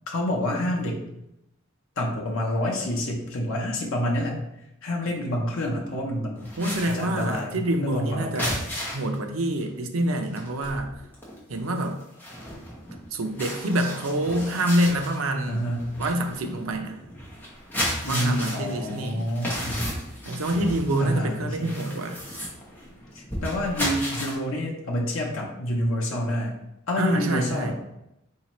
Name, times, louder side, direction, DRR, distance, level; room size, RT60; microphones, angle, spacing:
voice 1, 0.1-1.1 2.0-4.4 4.8-6.5 6.8-8.6 15.5-15.9 18.0-19.9 21.0-21.7 23.1-26.5 26.9-27.7, left 1 dB, 75° left, -2 dB, 0.7 m, -28 dB
sound 1, 6.4-9.2 9.6-9.8 10.1-24.3, equal, 10° left, 0.8 m, -34 dB
voice 2, 6.6-8.5 8.9-10.9 11.5-12.0 13.1-15.6 16.0-17.0 18.0-19.3 20.3-22.2 27.0-27.7, right 1 dB, 90° right, 5 dB, 0.5 m, -26 dB
4.1 x 2.7 x 3.0 m, 0.84 s
head